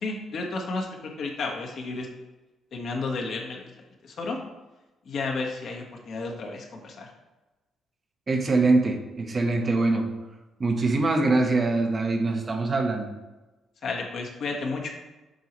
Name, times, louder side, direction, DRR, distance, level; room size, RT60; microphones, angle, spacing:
voice 1, 0.0-2.1 2.7-3.7 4.0-4.4 5.0-7.1 13.8-14.9, left 3 dB, 60° left, 1 dB, 1.3 m, -32 dB
voice 2, 8.3-10.1 10.6-13.1, right 3 dB, 35° right, 4 dB, 0.9 m, -23 dB
7.9 x 4.7 x 3.1 m, 1.1 s
cardioid pair, 90°, 0 cm